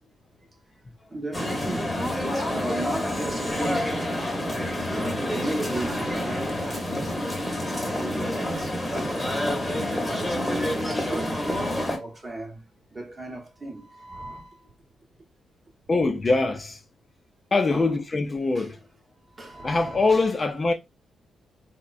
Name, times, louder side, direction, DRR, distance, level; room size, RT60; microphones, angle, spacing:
voice 1, 1.1-7.3 7.7-9.5 10.0-12.6 12.9-14.6 17.7-18.0 18.5-18.8 19.3-20.2, right 2 dB, 30° right, 0.9 m, -36 dB
sound 1, 1.3-12.0, left 1 dB, 15° left, 0.9 m, -28 dB
voice 2, 15.9-16.8 17.5-18.7 19.6-20.7, left 3 dB, 30° left, 0.5 m, -23 dB
3.6 x 2.1 x 2.4 m
cardioid pair, 90°, 0 cm